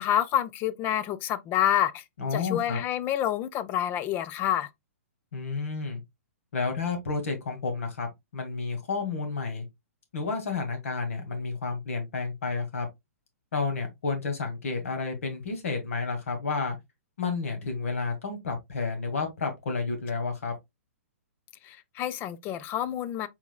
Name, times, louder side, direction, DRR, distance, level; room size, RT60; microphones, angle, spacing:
voice 1, 0.0-2.0 2.3-4.7 21.6-23.3, left 11 dB, 25° left, 0.4 m, -28 dB
voice 2, 2.2-2.8 5.3-6.0 6.5-8.1 8.3-9.6 10.1-12.9 13.5-16.8 17.2-20.5, left 4 dB, 65° left, 1.9 m, -31 dB
4.6 x 4.0 x 2.2 m
figure-of-eight pair, 120°, 8 cm